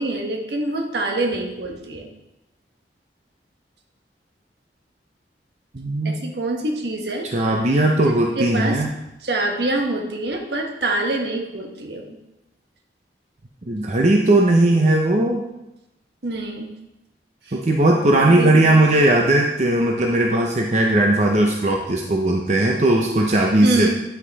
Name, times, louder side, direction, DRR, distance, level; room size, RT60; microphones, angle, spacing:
voice 1, 0.0-2.1 6.0-7.3 8.0-8.8 9.2-12.2 16.2-16.7 17.5-17.6 18.3-18.9 23.6-23.9, right 2 dB, 70° right, 2 dB, 1.3 m, -25 dB
voice 2, 5.7-6.1 7.3-8.9 13.7-15.4 17.5-23.9, right 1 dB, 40° right, 1 dB, 0.7 m, -18 dB
9.6 x 5.9 x 4.1 m, 0.91 s
head